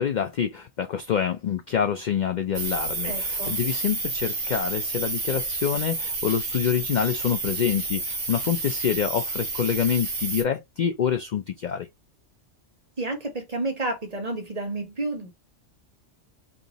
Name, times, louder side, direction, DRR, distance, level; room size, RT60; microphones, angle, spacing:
voice 1, 0.0-11.9, left 8 dB, 65° left, 0.4 m, -26 dB
sound 1, 2.5-10.4, right 3 dB, 80° right, 1.8 m, -30 dB
voice 2, 3.0-3.6 13.0-15.3, right 2 dB, 35° right, 1.0 m, -30 dB
3.5 x 2.7 x 4.0 m
omnidirectional pair, 1.3 m